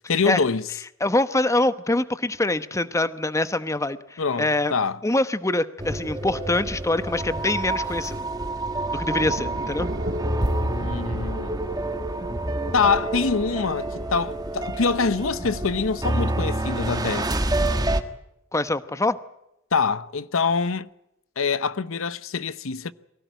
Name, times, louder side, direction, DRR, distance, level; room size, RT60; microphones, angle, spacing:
voice 1, 0.1-0.7 4.2-5.0 10.6-11.5 12.7-17.3 19.7-20.9 21.4-22.9, left 5 dB, 70° left, 0.8 m, -25 dB
voice 2, 1.0-4.7 5.0-8.2 8.9-9.9 18.5-19.2, left 2 dB, 15° left, 0.9 m, -24 dB
sound 1, 5.8-18.0, right 1 dB, 20° right, 1.5 m, -28 dB
sound 2, 6.6-17.3, right 1 dB, 45° right, 1.6 m, -39 dB
23.5 x 16.5 x 9.2 m
head